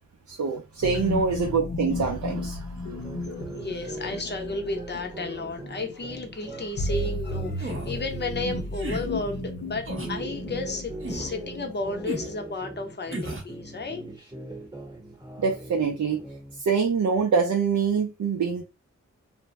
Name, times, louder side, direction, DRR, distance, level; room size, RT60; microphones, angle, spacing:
voice 1, 0.3-2.7 15.4-16.2 16.6-18.6, right 5 dB, 70° right, 0.5 m, -25 dB
sound 1, 0.8-12.4, left 2 dB, 65° left, 0.9 m, -34 dB
sound 2, 3.0-9.5 9.9-13.2 13.5-16.6, right 2 dB, 15° right, 1.0 m, -41 dB
voice 2, 3.5-14.0, left 3 dB, 35° left, 0.7 m, -33 dB
sound 3, 7.6-8.0 8.7-9.1 9.8-10.2 11.0-11.4 12.1-12.3 13.1-13.5, right 1 dB, 45° right, 0.8 m, -34 dB
2.6 x 2.1 x 3.1 m
wide cardioid pair, 55°, 30 cm